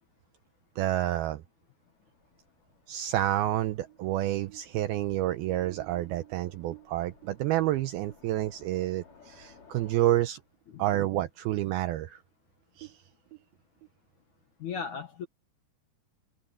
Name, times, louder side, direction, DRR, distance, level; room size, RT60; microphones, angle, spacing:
voice 1, 0.8-1.4 2.9-10.4 10.8-12.2 12.8-12.9, right 14 dB, 90° right, 2.2 m, -29 dB
Train, 1.8-10.1, left 5 dB, 45° left, 6.6 m, -60 dB
sound 1, 3.7-9.3 9.6-9.7 10.1-10.6 11.0-11.1 11.8-11.9 12.2-12.3 12.7-13.9, right 23 dB, 50° right, 2.7 m, -53 dB
voice 2, 14.6-15.3, left 6 dB, 65° left, 2.0 m, -36 dB
omnidirectional pair, 5.1 m